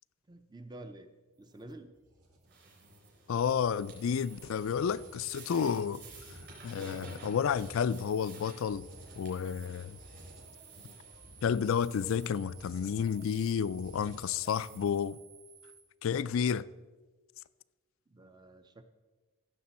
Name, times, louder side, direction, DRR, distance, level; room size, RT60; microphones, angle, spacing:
voice 1, 0.3-1.1 1.4-1.9 18.1-18.8, right 1 dB, 20° right, 0.5 m, -49 dB
sound 1, 1.4-15.2, equal, 85° right, 1.8 m, -54 dB
sound 2, 2.5-12.3, right 2 dB, 50° right, 3.9 m, -54 dB
voice 2, 3.3-6.0 6.6-8.9 9.2-10.0 11.4-15.2 16.0-16.7, left 7 dB, 65° left, 0.3 m, -31 dB
sound 3, 3.3-15.8, right 8 dB, 65° right, 2.5 m, -57 dB
15.5 x 7.0 x 4.2 m
head